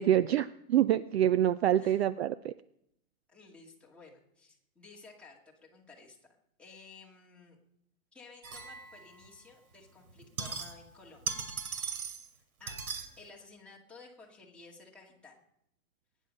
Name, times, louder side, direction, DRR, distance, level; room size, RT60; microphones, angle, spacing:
voice 1, 0.0-2.5, right 11 dB, 50° right, 15 dB, 0.5 m, -26 dB
voice 2, 3.3-6.2 6.6-7.6 8.1-11.4 12.6-12.9 13.2-15.4, left 3 dB, 5° left, -4 dB, 2.2 m, -54 dB
sound 1, 8.4-9.3 10.1-11.0 11.2-12.3 12.7-13.1, right 6 dB, 85° right, 2.9 m, -38 dB
21.0 x 10.0 x 5.4 m, 0.78 s
hypercardioid pair, 160°, 42 cm